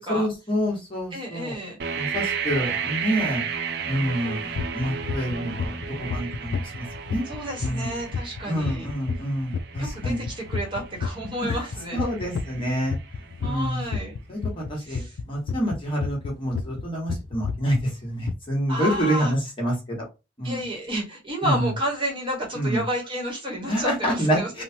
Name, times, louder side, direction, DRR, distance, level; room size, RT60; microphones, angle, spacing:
voice 1, 0.1-1.5 1.9-3.4 3.9-7.2 7.6-7.9 8.5-10.2 11.5-11.6 11.9-13.0 13.4-13.8 14.3-15.0 15.3-20.0 20.4-20.6 21.4-21.7 22.5-22.8 23.7-24.6, equal, 30° left, -3 dB, 1.2 m, -27 dB
voice 2, 1.1-1.8 7.3-8.9 9.8-12.1 13.4-14.1 14.8-15.2 18.7-19.3 20.4-24.5, equal, 25° right, -1 dB, 1.1 m, -31 dB
sound 1, 1.8-13.6, right 6 dB, 60° right, 0.5 m, -34 dB
sound 2, 4.6-16.8 17.1-17.8 18.2-18.3, left 5 dB, 80° left, 0.3 m, -30 dB
3.1 x 2.2 x 2.7 m, 0.27 s
head